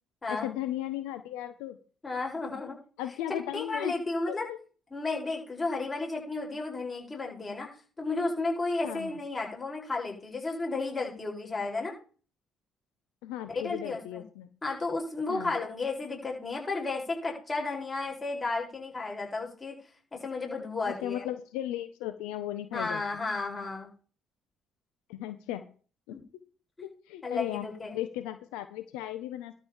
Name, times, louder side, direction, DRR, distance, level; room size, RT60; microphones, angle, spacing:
voice 1, 0.3-1.8 3.0-3.9 4.3-4.6 8.8-9.2 13.2-14.5 15.3-15.5 20.8-23.0 25.1-25.6 26.1-26.2 26.8-27.6 27.9-29.5, left 13 dB, 85° left, 10 dB, 1.1 m, -36 dB
voice 2, 2.0-2.8 3.3-4.5 4.9-7.7 8.0-11.9 13.5-14.2 14.6-19.8 20.1-21.3 22.7-23.9 26.1-26.2 26.8-26.9 27.2-28.0, left 3 dB, 25° left, 0 dB, 7.7 m, -33 dB
12.5 x 5.2 x 7.5 m, 0.38 s
supercardioid pair, 75°, 0 cm